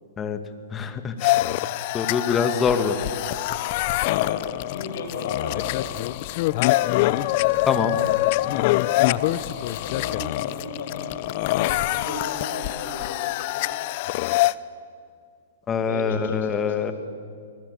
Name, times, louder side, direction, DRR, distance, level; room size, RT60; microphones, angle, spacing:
voice 1, 0.7-1.4 1.9-3.0 4.2-4.3 7.7-8.0 15.7-16.9, left 6 dB, 20° left, 9 dB, 2.2 m, -24 dB
sound 1, 1.2-14.5, left 17 dB, 50° left, 0.7 m, -25 dB
voice 2, 4.0-5.9 9.0-13.7 15.8-16.9, left 4 dB, 65° left, 5 dB, 6.3 m, -35 dB
28.0 x 20.5 x 8.4 m, 2.3 s
hypercardioid pair, 115°, 0 cm